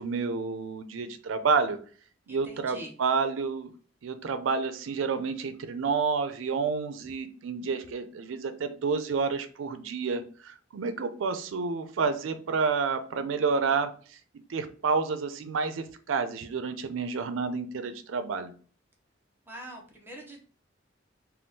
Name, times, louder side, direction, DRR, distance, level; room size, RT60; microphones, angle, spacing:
voice 1, 0.0-1.8 2.3-3.7 4.0-13.9 14.5-18.5, right 5 dB, 90° right, 10 dB, 0.4 m, -29 dB
voice 2, 2.3-2.9 19.5-20.4, right 1 dB, 10° right, 0 dB, 0.6 m, -44 dB
3.5 x 2.3 x 2.7 m, 0.41 s
head